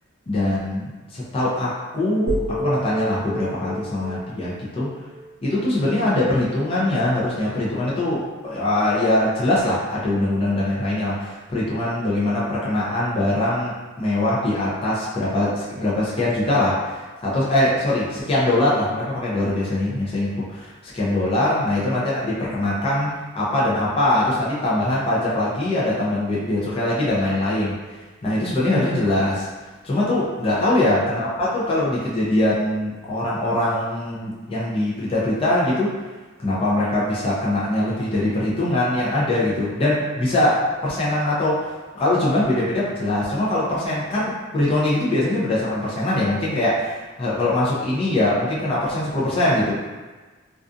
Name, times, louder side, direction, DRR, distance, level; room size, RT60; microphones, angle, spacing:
voice 1, 0.3-4.9 5.4-27.8 28.2-29.5 29.8-35.9 36.4-49.8, left 1 dB, 30° left, -7 dB, 0.5 m, -22 dB
sound 1, 2.3-6.4, right 1 dB, 85° left, 1.3 m, -30 dB
2.4 x 2.3 x 2.5 m, 1.3 s
head